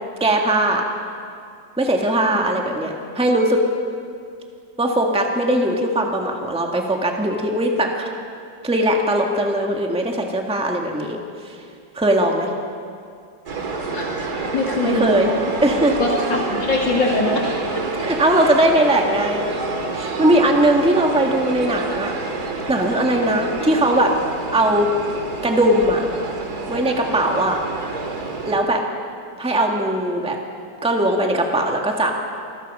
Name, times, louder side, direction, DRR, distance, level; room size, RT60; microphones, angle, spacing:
voice 1, 0.2-0.8 1.8-3.6 4.8-8.1 8.6-11.2 11.4-11.6 11.9-12.5 14.8-15.3 15.6-16.0 18.0-19.5 19.9-22.1 22.7-24.1 24.5-24.9 25.4-26.1 26.7-27.6 28.5-28.8 29.4-30.4 30.8-32.1, right 1 dB, 5° right, 1 dB, 1.7 m, -19 dB
sound 1, 13.5-28.6, right 3 dB, 60° right, 2.6 m, -28 dB
voice 2, 14.5-15.1 16.0-17.5, left 2 dB, 90° left, -1 dB, 3.2 m, -21 dB
28.5 x 21.0 x 5.6 m, 2.4 s
omnidirectional pair, 2.0 m